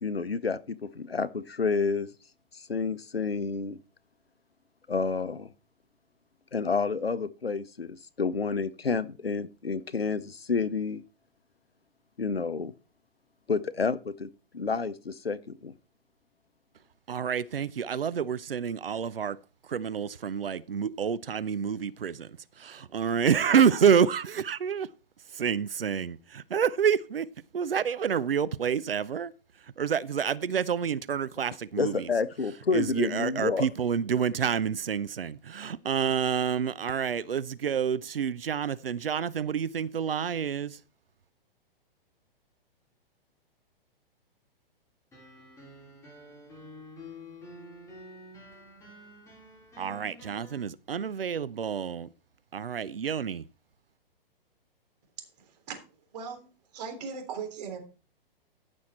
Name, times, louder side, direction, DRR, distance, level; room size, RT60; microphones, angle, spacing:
voice 1, 0.0-2.1 2.7-3.8 4.9-5.5 6.5-11.0 12.2-12.7 13.5-14.3 14.5-15.7 31.8-33.7, left 4 dB, 80° left, 0.7 m, -29 dB
voice 2, 17.1-19.4 19.7-24.9 25.3-27.3 27.5-29.3 29.8-32.1 32.7-40.8 49.8-52.1 52.5-53.4, right 7 dB, 70° right, 0.7 m, -28 dB
sound 1, 45.1-50.6, left 1 dB, 10° left, 5.1 m, -49 dB
voice 3, 55.4-55.8 56.1-57.8, right 6 dB, 45° right, 3.6 m, -39 dB
15.0 x 6.4 x 4.2 m
figure-of-eight pair, 115°, 30 cm